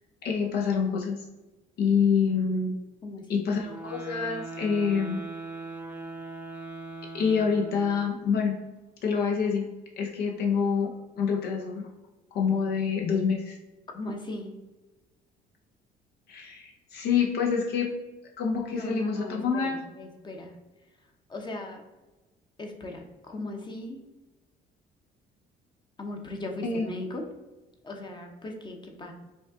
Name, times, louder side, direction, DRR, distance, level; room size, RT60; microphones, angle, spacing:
voice 1, 0.2-1.2 1.8-2.7 3.3-5.2 7.1-8.5 9.0-11.9 12.3-13.6 16.3-17.9 18.4-19.8 26.6-26.9, left 6 dB, 70° left, 0 dB, 0.7 m, -27 dB
voice 2, 3.0-3.5 13.9-14.5 18.7-19.7 20.0-20.5 21.3-21.8 22.6-24.0 26.0-27.2 27.8-29.1, left 2 dB, 25° left, 2 dB, 0.8 m, -38 dB
sound 1, 3.6-8.2, right 3 dB, 10° right, 0.5 m, -40 dB
5.3 x 2.3 x 3.6 m, 1.1 s
cardioid pair, 110°, 17 cm